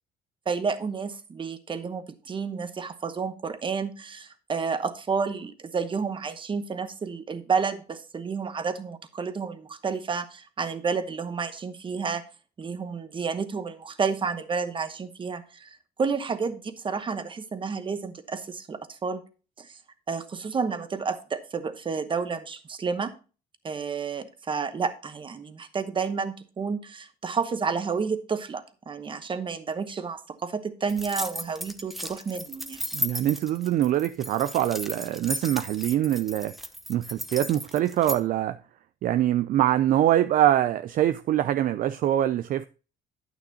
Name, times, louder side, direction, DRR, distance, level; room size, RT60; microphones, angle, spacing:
voice 1, 0.5-12.2 12.6-19.2 19.6-19.8 20.1-23.1 23.6-32.8, right 5 dB, 30° right, 1.0 m, -30 dB
sound 1, 30.9-38.2, equal, ahead, 0.7 m, -35 dB
voice 2, 32.9-36.5 36.9-38.6 39.0-42.7, right 12 dB, 55° right, 0.4 m, -24 dB
9.2 x 9.1 x 2.8 m
cardioid pair, 110°, 17 cm